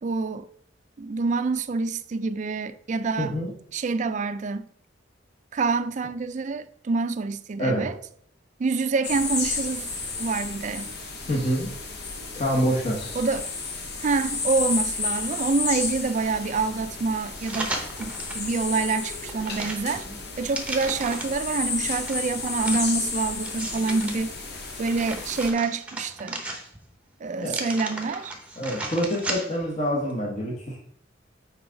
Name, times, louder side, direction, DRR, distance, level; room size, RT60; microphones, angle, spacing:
voice 1, 0.0-0.5 1.0-3.3 3.7-4.7 5.5-7.9 8.6-9.9 10.2-10.9 13.2-13.5 14.0-17.7 18.0-20.1 20.4-24.3 24.8-26.4 27.2-28.3, right 4 dB, 40° right, 0.3 m, -27 dB
voice 2, 3.2-3.5 7.6-7.9 11.3-11.7 12.3-13.1 27.4-27.7 28.6-30.8, equal, 40° left, 1.1 m, -26 dB
sound 1, 9.0-25.5, left 4 dB, 60° left, 1.1 m, -32 dB
sound 2, 17.3-18.5 18.9-21.5 22.1-24.2 24.6-26.9 27.4-29.7 30.1-30.2, right 2 dB, 5° right, 0.8 m, -35 dB
5.8 x 4.7 x 3.8 m
head